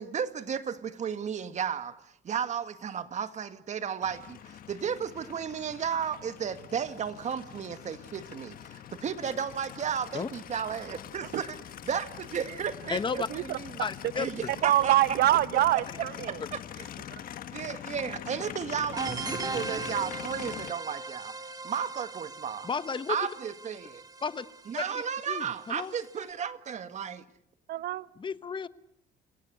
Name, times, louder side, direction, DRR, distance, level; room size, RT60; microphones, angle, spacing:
voice 1, 0.0-11.6 11.8-13.0 13.3-13.7 14.2-15.0 16.3-16.9 17.5-21.3 21.6-22.7 23.1-24.0 24.7-27.3, right 7 dB, 45° right, 1.9 m, -34 dB
Aircraft, 4.0-20.7, left 10 dB, 60° left, 1.5 m, -43 dB
voice 2, 12.9-13.3 13.8-14.5 22.6-23.2 24.2-24.5 24.9-25.9 28.2-28.7, left 5 dB, 30° left, 1.1 m, -33 dB
voice 3, 14.6-16.4 27.7-28.1, right 13 dB, 65° right, 1.0 m, -25 dB
sound 1, 18.9-26.3, right 3 dB, 20° right, 1.8 m, -40 dB
29.0 x 18.0 x 8.1 m
cardioid pair, 110°, 17 cm